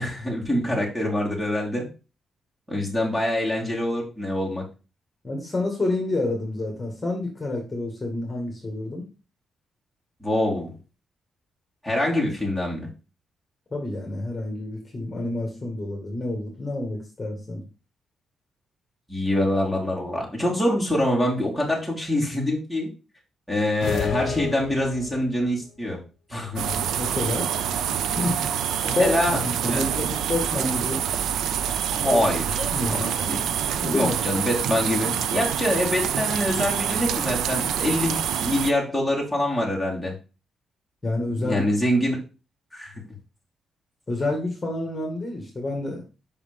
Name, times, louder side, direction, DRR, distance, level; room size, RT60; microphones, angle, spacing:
voice 1, 0.0-1.8 2.7-4.6 10.2-10.7 11.8-12.9 19.1-22.9 23.5-26.0 26.3-26.7 29.0-29.4 29.7-29.9 31.9-33.5 33.9-40.1 41.4-42.2 42.7-42.9, left 1 dB, 5° right, -2 dB, 2.8 m, -25 dB
voice 2, 5.2-9.1 13.7-17.6 27.0-27.5 28.1-28.4 28.9-31.1 32.0-32.2 32.6-33.1 33.8-34.2 41.0-41.6 44.1-46.0, left 2 dB, 20° left, 0 dB, 1.9 m, -28 dB
sound 1, 23.8-25.4, left 7 dB, 70° left, 0.6 m, -30 dB
sound 2, 26.6-38.7, right 9 dB, 90° right, 0.5 m, -26 dB
5.6 x 4.7 x 5.3 m, 0.32 s
cardioid pair, 110°, 0 cm